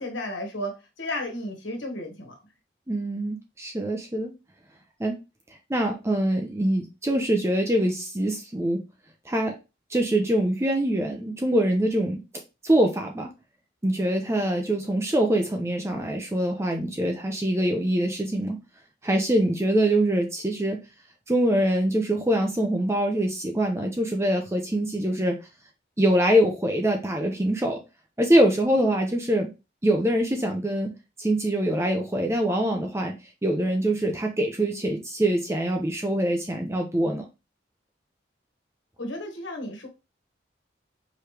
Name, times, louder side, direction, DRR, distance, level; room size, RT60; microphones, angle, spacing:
voice 1, 0.0-2.3 39.0-39.9, left 1 dB, 80° left, 1.5 m, -33 dB
voice 2, 2.9-4.3 5.0-5.2 5.7-8.8 9.3-9.6 9.9-12.2 12.6-13.3 13.8-18.6 19.0-20.8 21.3-25.4 26.0-27.8 28.2-29.5 29.8-30.9 31.2-33.1 33.4-37.3, right 1 dB, 15° right, 0.5 m, -24 dB
4.7 x 3.2 x 3.3 m
head